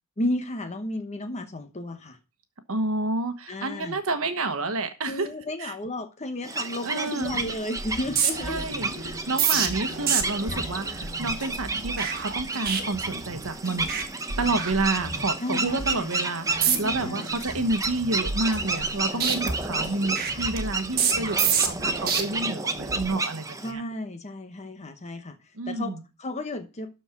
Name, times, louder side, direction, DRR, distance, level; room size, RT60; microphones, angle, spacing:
voice 1, 0.2-2.2 3.5-4.0 5.0-8.7 9.0-9.2 10.5-10.6 15.4-16.1 16.6-17.3 19.1-19.2 23.6-25.4 25.7-26.9, left 1 dB, 30° left, 1.0 m, -33 dB
voice 2, 2.7-5.3 5.6-5.7 6.8-7.3 8.4-13.9 14.4-23.8 25.6-26.0, right 2 dB, 65° right, 1.2 m, -29 dB
sound 1, 6.4-23.7, right 3 dB, 15° right, 0.8 m, -31 dB
sound 2, 7.2-7.5 7.8-13.5 13.8-14.0 14.3-15.3 15.7-15.9 16.5-17.0 17.4-18.9 19.2-22.2 22.8-23.1, right 6 dB, 45° right, 1.6 m, -29 dB
sound 3, 8.4-11.8 12.5-12.9 13.6-14.1 14.4-17.9 18.5-19.0 19.3-20.6, equal, 85° left, 1.2 m, -45 dB
12.5 x 4.5 x 5.8 m
head